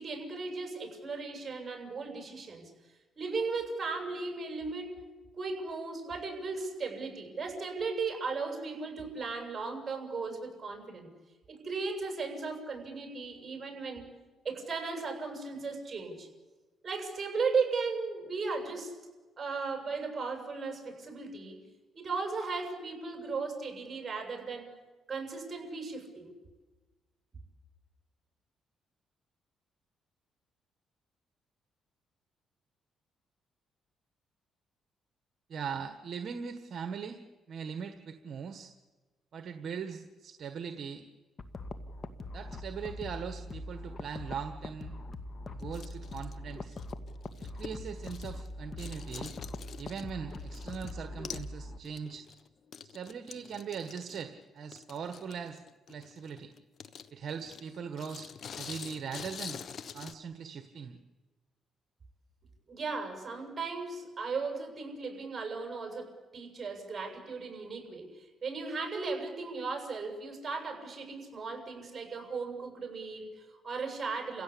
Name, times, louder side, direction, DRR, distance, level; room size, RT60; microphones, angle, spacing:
voice 1, 0.0-2.7 3.2-5.0 5.4-11.1 11.5-14.0 14.4-16.3 16.8-18.9 19.4-21.6 21.9-24.7 25.1-26.3 62.7-74.4, right 4 dB, 30° right, 3 dB, 7.6 m, -36 dB
voice 2, 35.5-37.2 37.5-38.7 39.3-41.0 42.3-44.9 45.5-46.8 47.4-49.3 49.8-52.3 52.9-55.6 55.9-56.5 57.1-58.3 58.6-59.6 59.9-61.0, right 6 dB, 55° right, 7 dB, 1.5 m, -40 dB
sound 1, 41.4-51.8, left 2 dB, 35° left, 1.9 m, -42 dB
sound 2, 45.6-48.5 48.8-50.9 51.2-51.5 51.8-60.1, left 7 dB, 55° left, 1.1 m, -46 dB
30.0 x 16.5 x 8.6 m, 1.3 s
cardioid pair, 90°, 0 cm